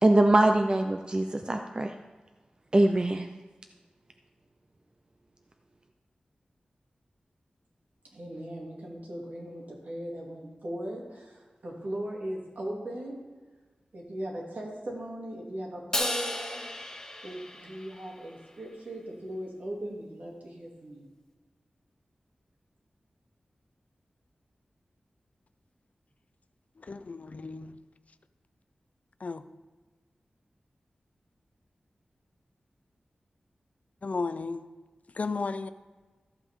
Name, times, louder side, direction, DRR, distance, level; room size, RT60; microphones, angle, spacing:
voice 1, 0.0-1.9 2.7-3.3, right 1 dB, 30° right, 5 dB, 0.6 m, -23 dB
voice 2, 8.1-13.2 13.9-16.7 17.2-21.1, right 1 dB, 70° right, -3 dB, 2.8 m, -38 dB
Crash cymbal, 15.9-18.3, left 1 dB, 20° left, 1.4 m, -34 dB
voice 3, 26.8-27.8 29.2-29.4 34.0-34.7 35.1-35.7, left 4 dB, 55° left, 11 dB, 0.5 m, -34 dB
14.0 x 8.0 x 3.7 m, 1.3 s
wide cardioid pair, 80°, 3 cm